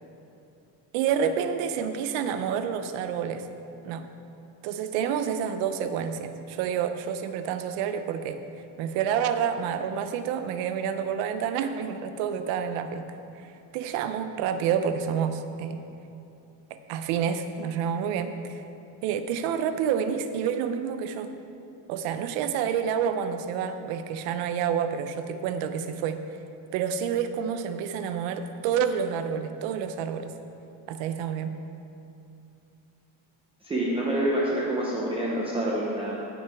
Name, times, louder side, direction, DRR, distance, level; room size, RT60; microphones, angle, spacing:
voice 1, 0.9-3.5 3.8-4.1 4.6-8.4 8.8-15.8 16.9-18.6 19.0-21.3 21.9-26.2 26.7-30.3 30.9-31.5, right 7 dB, 70° right, 9 dB, 0.8 m, -28 dB
voice 2, 33.6-36.1, right 1 dB, 10° right, -5 dB, 0.6 m, -27 dB
16.5 x 5.9 x 3.5 m, 2.8 s
cardioid pair, 175°, 47 cm